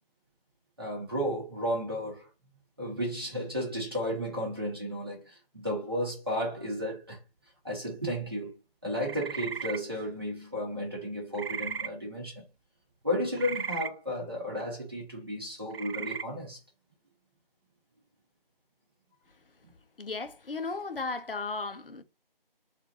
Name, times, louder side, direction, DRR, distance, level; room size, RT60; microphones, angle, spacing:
voice 1, 0.8-2.3 2.8-7.2 7.6-8.5 8.8-12.4 13.0-16.6, equal, 25° right, 1.5 m, -33 dB
sound 1, 9.0-9.8 11.3-11.9 13.4-13.9 15.7-16.2, right 6 dB, 85° right, 0.6 m, -36 dB
voice 2, 20.0-22.0, left 3 dB, 65° left, 0.7 m, -35 dB
4.3 x 2.6 x 2.8 m
figure-of-eight pair, 180°, 29 cm